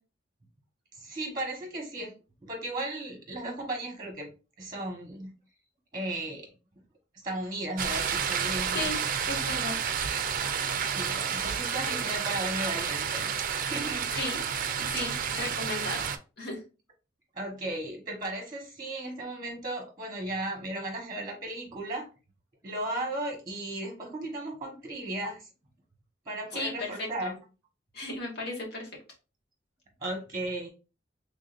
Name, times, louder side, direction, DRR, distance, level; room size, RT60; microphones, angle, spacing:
voice 1, 0.9-2.1 2.4-4.3 4.6-5.3 5.9-6.5 7.2-8.9 10.7-14.0 17.3-22.1 22.6-25.5 26.2-27.3 30.0-30.7, right 1 dB, 25° right, 1 dB, 1.2 m, -35 dB
sound 1, 7.8-16.2, right 7 dB, 50° right, 0.5 m, -30 dB
voice 2, 9.3-9.7 14.1-14.4 14.9-16.0 16.4-16.6 26.5-26.7 27.0-27.4 27.9-28.9, left 2 dB, 60° left, -2 dB, 1.5 m, -35 dB
3.7 x 3.4 x 2.5 m, 0.31 s
head